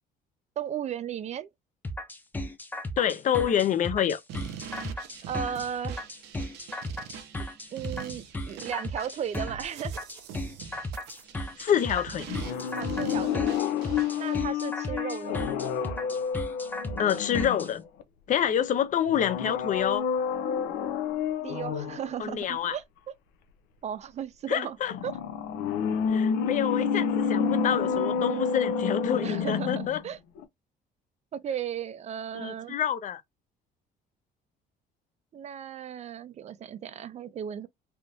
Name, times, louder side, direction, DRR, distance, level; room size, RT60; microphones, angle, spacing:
voice 1, 0.6-1.5 5.3-6.1 7.7-9.9 12.8-13.5 14.2-15.5 21.4-22.8 23.8-24.8 25.0-25.2 29.2-30.2 31.3-32.8 35.3-37.7, right 9 dB, 40° right, 0.4 m, -35 dB
sound 1, 1.8-17.7, left 1 dB, 10° left, 0.6 m, -35 dB
voice 2, 3.0-4.2 11.6-12.3 15.3-15.4 17.0-17.8 18.3-20.1 22.2-22.8 24.5-24.9 26.1-30.0 32.3-33.2, left 9 dB, 50° left, 0.6 m, -27 dB
sound 2, 4.3-14.4, right 8 dB, 85° right, 0.7 m, -44 dB
sound 3, 12.3-18.0 19.1-22.1 24.9-30.1 30.4-30.5, left 6 dB, 90° left, 0.6 m, -29 dB
3.5 x 2.5 x 2.7 m
cardioid pair, 110°, 17 cm